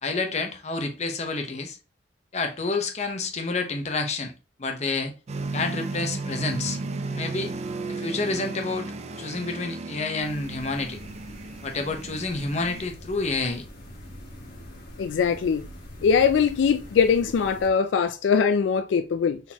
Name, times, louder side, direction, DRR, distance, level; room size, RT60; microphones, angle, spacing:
voice 1, 0.0-1.8 2.3-4.3 4.6-5.1 5.5-6.8 7.1-7.5 7.9-8.9 9.2-11.0 11.6-13.7, left 3 dB, 40° left, 0.8 m, -29 dB
sound 1, 5.3-12.9, right 3 dB, 35° right, 0.4 m, -34 dB
sound 2, 10.2-17.7, left 1 dB, 55° left, 1.5 m, -44 dB
voice 2, 15.0-15.6 16.0-19.4, left 6 dB, 75° left, 0.3 m, -21 dB
4.1 x 3.9 x 2.8 m
head